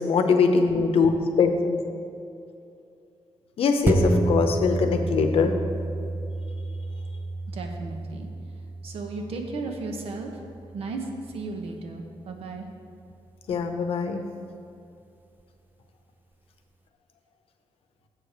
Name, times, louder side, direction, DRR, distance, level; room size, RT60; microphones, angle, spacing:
voice 1, 0.0-1.8 3.6-5.5 13.5-14.2, left 5 dB, 80° left, 6 dB, 0.7 m, -22 dB
sound 1, 3.8-12.7 13.1-13.2, right 2 dB, 20° right, 0.4 m, -30 dB
voice 2, 7.5-8.3 8.8-10.3 10.7-11.1 11.3-12.7, right 3 dB, 85° right, 3 dB, 1.0 m, -35 dB
7.6 x 4.9 x 6.6 m, 2.6 s
wide cardioid pair, 160°, 10 cm